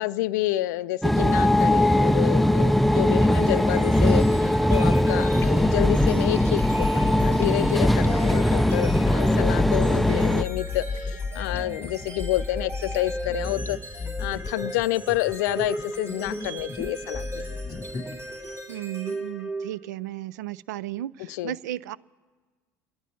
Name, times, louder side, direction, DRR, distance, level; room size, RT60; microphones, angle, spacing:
voice 1, 0.0-13.8 14.2-17.4 21.3-21.6, left 16 dB, 65° left, 18 dB, 0.4 m, -29 dB
sound 1, 1.0-10.4, left 1 dB, ahead, 0.4 m, -21 dB
sound 2, 3.3-20.0, right 1 dB, 25° right, 3.5 m, -38 dB
sound 3, 5.4-18.5, left 4 dB, 20° left, 0.7 m, -31 dB
voice 2, 18.7-22.0, right 14 dB, 70° right, 20 dB, 0.3 m, -34 dB
28.0 x 10.5 x 4.2 m, 1.4 s
figure-of-eight pair, 70°, 10 cm